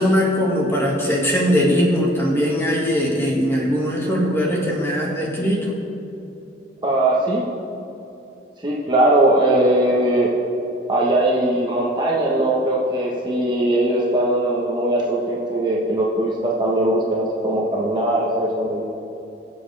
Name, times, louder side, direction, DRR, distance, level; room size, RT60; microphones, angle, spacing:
voice 1, 0.0-5.8, equal, 15° left, -3 dB, 2.1 m, -20 dB
voice 2, 6.8-7.4 8.6-10.3 10.9-18.8, right 1 dB, 25° right, -4 dB, 1.4 m, -20 dB
23.0 x 7.7 x 3.5 m, 2.9 s
head